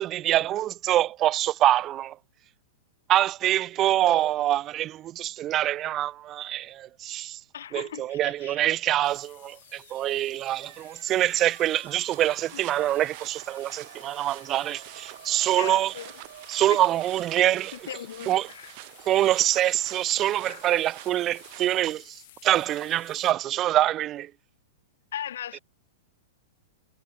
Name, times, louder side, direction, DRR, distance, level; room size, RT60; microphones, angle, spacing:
voice 1, 0.0-2.2 3.1-7.4 7.7-15.9 16.5-17.7 18.3-18.5 19.1-24.3, right 13 dB, 25° right, 0.5 m, -25 dB
voice 2, 7.5-8.7 15.5-16.1 17.9-18.7 20.5-20.6 25.1-25.6, left 10 dB, 80° left, 0.7 m, -38 dB
sound 1, 9.0-23.3, left 16 dB, 55° left, 2.7 m, -54 dB
sound 2, 9.2-19.0, right 13 dB, 65° right, 5.8 m, -52 dB
sound 3, 12.1-21.9, right 35 dB, 45° right, 4.9 m, -46 dB
hypercardioid pair, 145°, 0 cm